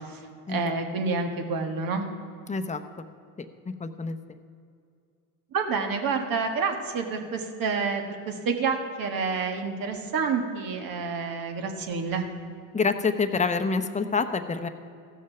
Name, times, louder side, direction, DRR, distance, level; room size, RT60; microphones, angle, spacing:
voice 1, 0.5-2.0 5.5-12.2, right 5 dB, 65° right, 4 dB, 1.5 m, -28 dB
voice 2, 2.5-2.8 3.8-4.2 12.7-14.7, left 4 dB, 20° left, 8 dB, 0.7 m, -26 dB
15.0 x 6.4 x 5.8 m, 2.4 s
supercardioid pair, 70°, 38 cm